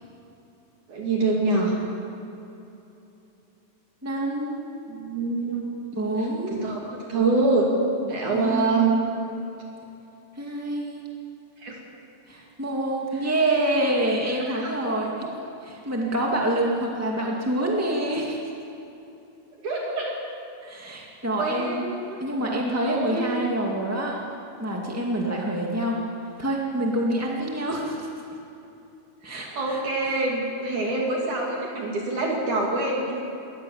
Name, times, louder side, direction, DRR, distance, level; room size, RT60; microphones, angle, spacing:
voice 1, 0.9-1.7 4.9-5.6 6.2-7.7 8.1-8.9 11.6-11.7 14.6-14.7 15.2-15.3 19.6-20.1 21.4-22.2 22.4-23.3 29.2-33.2, right 3 dB, 55° right, -2 dB, 4.0 m, -25 dB
voice 2, 4.0-4.7 5.9-6.7 8.3-9.0 10.4-11.1 12.3-15.3 15.6-18.4 20.6-21.8 22.2-24.2 24.6-26.0 26.4-28.1 29.2-29.8 30.8-30.9, right 1 dB, 10° right, -1 dB, 0.8 m, -27 dB
22.5 x 18.5 x 7.3 m, 2.9 s
omnidirectional pair, 4.4 m